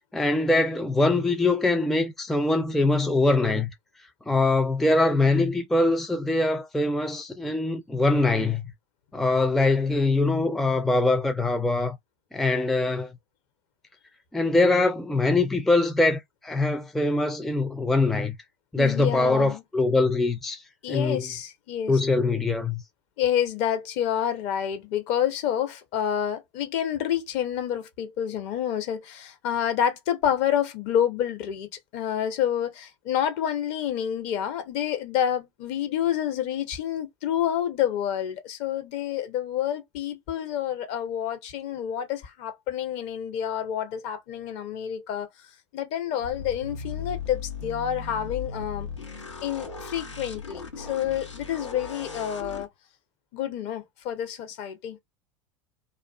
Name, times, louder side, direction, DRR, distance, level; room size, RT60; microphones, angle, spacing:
voice 1, 0.1-3.7 4.3-8.7 9.1-12.0 12.3-13.1 14.3-18.3 18.7-20.6 20.9-21.3 21.9-22.8, left 2 dB, ahead, 0.4 m, -23 dB
voice 2, 18.8-19.6 20.8-22.2 23.2-31.7 31.9-45.3 45.7-48.9 49.4-52.7 53.3-55.0, left 10 dB, 50° left, 0.7 m, -28 dB
sound 1, 46.2-52.7, left 5 dB, 85° left, 0.7 m, -37 dB
2.4 x 2.3 x 2.3 m
figure-of-eight pair, 80°, 15 cm